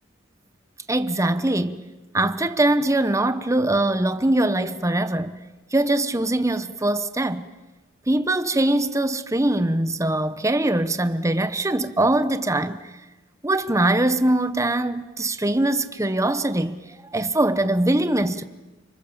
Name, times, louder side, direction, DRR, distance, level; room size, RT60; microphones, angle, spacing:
voice 1, 0.9-1.8 2.1-5.4 5.7-7.5 8.1-12.9 13.4-18.4, right 1 dB, 15° right, 1.0 m, -22 dB
29.0 x 26.5 x 7.3 m
head